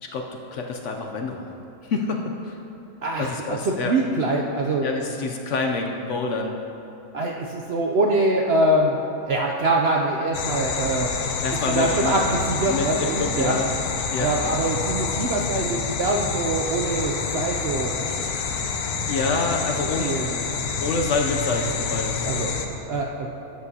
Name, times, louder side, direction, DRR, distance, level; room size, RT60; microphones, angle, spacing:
voice 1, 0.5-1.5 1.8-2.6 3.2-4.0 4.8-6.6 11.4-12.1 12.7-13.7 14.1-14.3 19.0-20.2 20.8-22.5, left 3 dB, 65° left, 2 dB, 0.8 m, -27 dB
voice 2, 3.0-4.9 7.1-9.0 9.2-11.1 11.7-13.6 14.2-17.9 19.2-19.4 20.0-20.4 22.3-22.5 22.9-23.3, right 2 dB, 65° right, 0 dB, 0.6 m, -24 dB
sound 1, 10.3-22.7, left 5 dB, 80° left, 1.2 m, -28 dB
12.5 x 8.3 x 2.8 m, 2.8 s
omnidirectional pair, 1.6 m